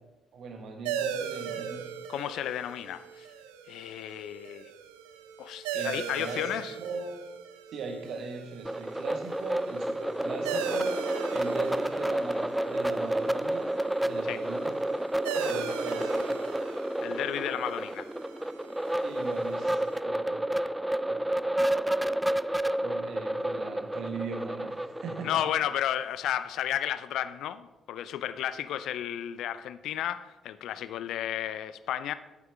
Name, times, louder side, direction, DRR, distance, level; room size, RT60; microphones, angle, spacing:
voice 1, 0.3-1.8 5.7-7.1 7.7-11.0 11.3-13.7 14.0-14.8 15.3-16.5 19.0-20.5 21.1-21.2 22.8-25.4, right 4 dB, 55° right, 1.6 m, -39 dB
sound 1, 0.8-20.0, right 8 dB, 70° right, 0.6 m, -39 dB
voice 2, 2.1-3.3 3.7-4.7 5.4-6.8 14.3-14.4 17.0-18.1 25.2-32.1, left 11 dB, 60° left, 0.4 m, -33 dB
sound 2, 8.6-25.3, right 1 dB, 5° right, 0.4 m, -30 dB
10.5 x 9.2 x 3.6 m
figure-of-eight pair, 40°, 0 cm